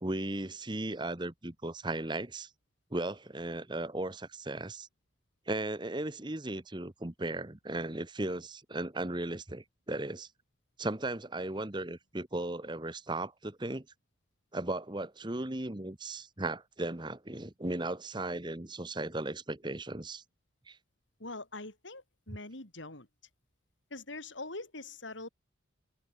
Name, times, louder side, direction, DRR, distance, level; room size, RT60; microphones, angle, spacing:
voice 1, 0.0-2.5 2.9-4.9 5.5-10.3 10.8-13.8 14.5-20.2 20.7-20.8, right 2 dB, 25° right, 1.2 m, -36 dB
voice 2, 21.2-23.1 23.9-25.3, left 2 dB, 75° left, 5.1 m, -43 dB
open air
head